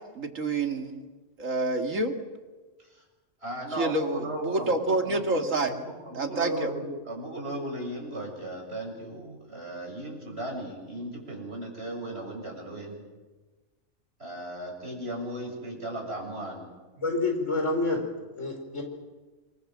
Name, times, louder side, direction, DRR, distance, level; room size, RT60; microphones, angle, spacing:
voice 1, 0.1-1.0 1.4-2.1 3.8-5.8 6.1-6.7, right 2 dB, 85° right, 4 dB, 2.7 m, -28 dB
voice 2, 3.4-13.0 14.2-16.7, right 1 dB, 55° right, 0 dB, 7.5 m, -36 dB
voice 3, 17.0-18.0 18.4-18.8, left 2 dB, 70° left, 3 dB, 5.2 m, -27 dB
27.5 x 24.0 x 7.6 m, 1.3 s
omnidirectional pair, 1.3 m